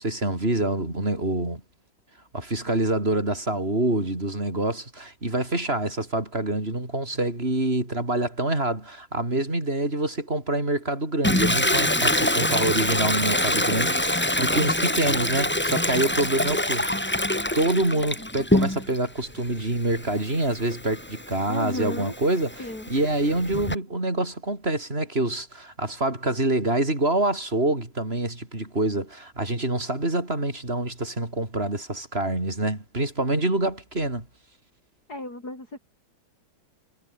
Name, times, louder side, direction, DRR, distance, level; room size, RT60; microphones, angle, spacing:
voice 1, 0.0-1.6 2.3-17.2 17.5-34.3, right 2 dB, 30° right, 6.0 m, -26 dB
Toilet flush, 11.2-19.0 19.4-23.7, left 1 dB, 5° left, 1.5 m, -25 dB
voice 2, 21.5-22.1 22.6-22.9 35.1-35.8, left 1 dB, 45° left, 8.1 m, -33 dB
omnidirectional pair, 2.2 m